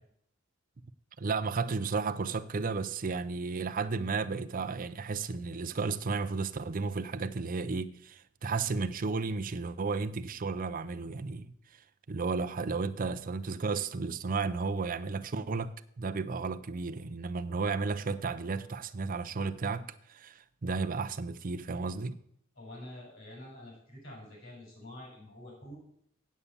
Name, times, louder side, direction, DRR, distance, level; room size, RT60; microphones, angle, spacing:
voice 1, 1.2-11.8 12.1-22.2, right 4 dB, 40° right, 0.5 m, -33 dB
voice 2, 22.6-25.8, left 1 dB, 65° left, 5.7 m, -47 dB
8.3 x 8.2 x 7.2 m
head